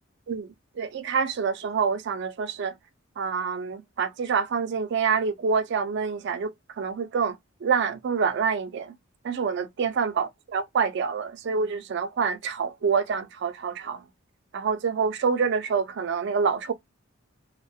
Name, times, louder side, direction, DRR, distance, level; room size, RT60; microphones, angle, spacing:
voice 1, 0.8-2.7 3.2-6.5 6.8-9.0 9.2-14.0 14.5-16.7, right 5 dB, 55° right, 0.3 m, -27 dB
2.3 x 2.1 x 2.6 m
head